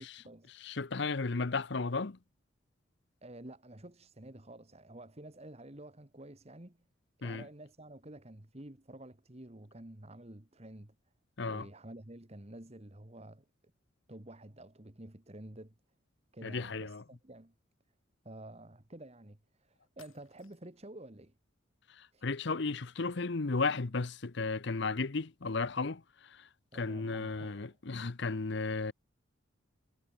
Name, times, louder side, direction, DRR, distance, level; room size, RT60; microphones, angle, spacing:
voice 1, 0.0-0.5 3.2-6.8 7.2-10.9 11.4-13.4 14.1-15.7 16.3-17.5 18.2-21.3 22.1-22.2 26.7-27.8, right 1 dB, 30° right, 1.7 m, -50 dB
voice 2, 0.6-2.2 7.2-7.5 11.4-11.7 16.4-17.0 22.0-26.0 26.3-26.5 26.7-28.9, left 3 dB, 55° left, 0.8 m, -34 dB
sound 1, 20.0-20.9, left 7 dB, 80° left, 6.5 m, -63 dB
head